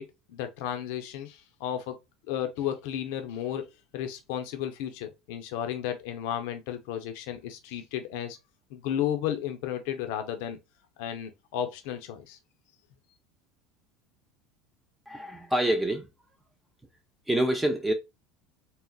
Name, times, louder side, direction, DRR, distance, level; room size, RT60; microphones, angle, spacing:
voice 1, 0.0-2.0 2.3-3.7 3.9-8.4 8.7-10.6 11.0-12.4, left 10 dB, 65° left, 0.5 m, -33 dB
voice 2, 15.1-16.1 17.3-17.9, right 1 dB, 10° right, 0.4 m, -26 dB
3.9 x 2.0 x 2.2 m
hypercardioid pair, 75°, 0 cm